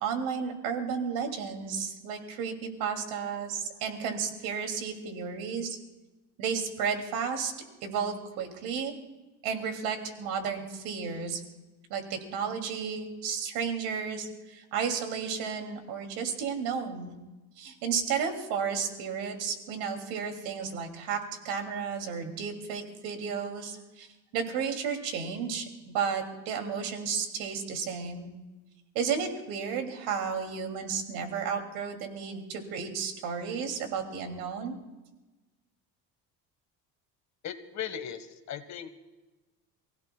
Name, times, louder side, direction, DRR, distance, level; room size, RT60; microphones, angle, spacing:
voice 1, 0.0-5.8 6.4-7.5 7.8-8.9 9.4-11.4 11.9-17.2 17.6-24.1 24.3-28.3 28.9-34.8, right 6 dB, 80° right, 4 dB, 2.8 m, -33 dB
voice 2, 37.4-38.9, left 9 dB, 50° left, 9 dB, 1.6 m, -38 dB
28.5 x 16.5 x 2.3 m, 1.1 s
supercardioid pair, 90°, 36 cm